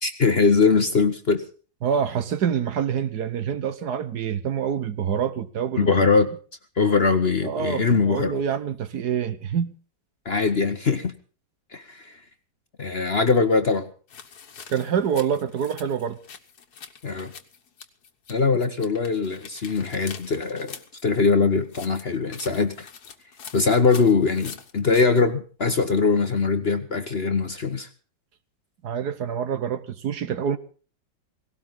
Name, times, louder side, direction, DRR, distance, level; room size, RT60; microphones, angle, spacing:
voice 1, 0.0-1.4 5.8-6.3 6.8-8.4 10.2-11.1 11.7-12.2 12.8-13.8 17.0-17.3 18.3-20.8 21.0-22.9 23.5-27.9, left 4 dB, 40° left, 1.0 m, -21 dB
voice 2, 1.8-5.9 7.4-9.7 14.7-16.2 28.8-30.6, right 8 dB, 65° right, 1.4 m, -26 dB
sound 1, 14.1-18.3 18.6-21.0 21.6-25.0, left 7 dB, 60° left, 1.8 m, -44 dB
18.0 x 17.5 x 3.9 m
omnidirectional pair, 2.0 m